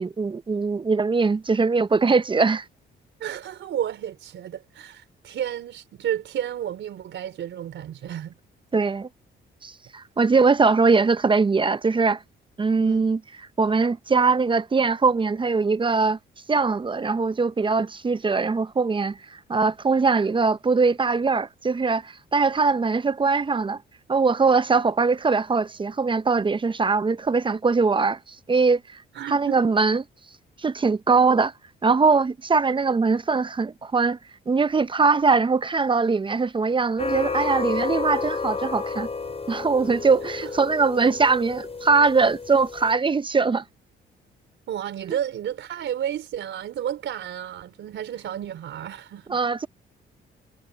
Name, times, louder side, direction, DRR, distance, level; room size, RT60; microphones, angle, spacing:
voice 1, 0.0-2.6 8.7-9.1 9.6-12.2 12.6-13.2 13.6-16.2 16.5-23.8 24.1-28.8 29.3-30.0 30.6-31.5 31.8-34.2 34.5-39.1 39.5-43.6 49.3-49.7, right 4 dB, 25° right, 0.6 m, -21 dB
voice 2, 3.2-8.3 12.8-13.1 29.1-29.7 40.4-40.7 44.7-49.4, right 10 dB, 70° right, 4.2 m, -32 dB
sound 1, 37.0-42.9, left 4 dB, 30° left, 6.5 m, -31 dB
cardioid pair, 90°, 20 cm